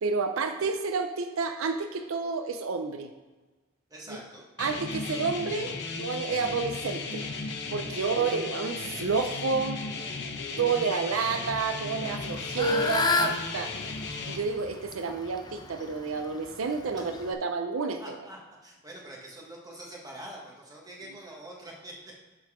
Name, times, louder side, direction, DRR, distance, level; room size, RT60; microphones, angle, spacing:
voice 1, 0.0-3.1 4.1-4.2 4.6-7.3 7.7-9.8 10.6-13.7 14.3-18.2, right 4 dB, 85° right, 7 dB, 0.5 m, -30 dB
voice 2, 3.9-4.5 7.9-8.1 10.5-10.6 11.9-12.0 12.3-12.4 16.0-16.1 16.9-17.1 18.0-22.3, right 1 dB, 20° right, -2 dB, 1.4 m, -45 dB
sound 1, 4.6-14.4, left 4 dB, 55° left, 0.8 m, -35 dB
Fowl / Bird, 12.0-17.3, left 3 dB, 20° left, 0.4 m, -32 dB
7.3 x 3.8 x 4.9 m, 1.2 s
head